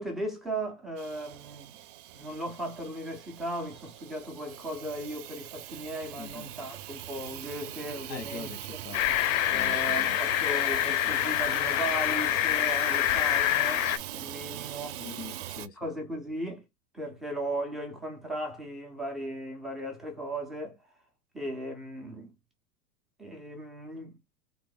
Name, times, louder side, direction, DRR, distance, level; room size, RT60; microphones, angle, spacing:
voice 1, 0.0-1.8 2.1-8.5 9.5-15.0 15.8-16.6 16.9-20.8 21.3-22.3 23.2-24.2, right 1 dB, ahead, 0.3 m, -37 dB
Hiss / Toilet flush / Trickle dribble, 1.0-15.7, right 13 dB, 50° right, 0.6 m, -41 dB
voice 2, 8.1-9.0 9.5-10.2 15.0-15.9, left 7 dB, 90° left, 1.7 m, -43 dB
sound 1, 8.9-14.0, left 14 dB, 50° left, 0.6 m, -26 dB
3.7 x 2.1 x 3.7 m
supercardioid pair, 135°, 47 cm